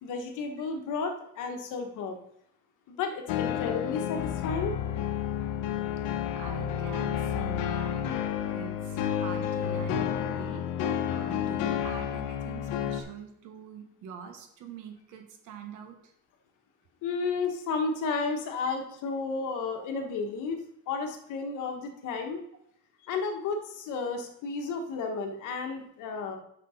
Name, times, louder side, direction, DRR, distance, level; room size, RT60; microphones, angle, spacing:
voice 1, 0.0-2.2 2.9-4.7 17.0-20.6 20.9-22.4 23.0-26.4, left 4 dB, 60° left, 4 dB, 1.4 m, -32 dB
sound 1, 3.3-13.0, left 9 dB, 80° left, 1.0 m, -30 dB
voice 2, 6.3-8.2 8.5-10.7 11.1-16.1 19.8-19.9, right 7 dB, 60° right, 6 dB, 1.2 m, -44 dB
6.7 x 6.2 x 5.6 m, 0.72 s
cardioid pair, 180°, 34 cm